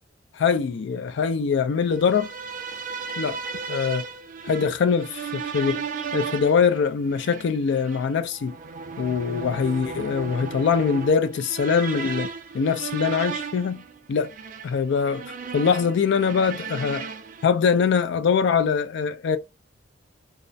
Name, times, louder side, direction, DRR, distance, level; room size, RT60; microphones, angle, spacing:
voice 1, 0.3-2.3 3.2-3.4 3.7-4.1 4.5-5.8 6.1-8.6 9.0-12.3 12.5-13.8 14.1-14.3 14.6-17.1 17.4-19.4, left 6 dB, 65° left, 0.3 m, -23 dB
sound 1, 1.9-17.5, right 5 dB, 45° right, 0.3 m, -35 dB
2.3 x 2.0 x 2.6 m
head